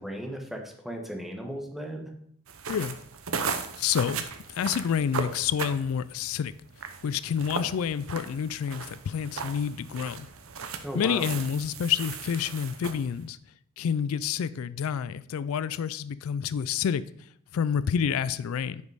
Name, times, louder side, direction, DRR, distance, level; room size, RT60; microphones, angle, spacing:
voice 1, 0.0-2.1 10.8-11.3, equal, ahead, 1.1 m, -36 dB
sound 1, 2.5-13.2, right 5 dB, 75° right, 0.9 m, -37 dB
voice 2, 3.8-4.2 4.5-6.5 7.0-10.3 10.9-13.4 13.8-17.0 17.5-18.8, left 7 dB, 75° left, 0.3 m, -28 dB
9.5 x 5.2 x 4.8 m
head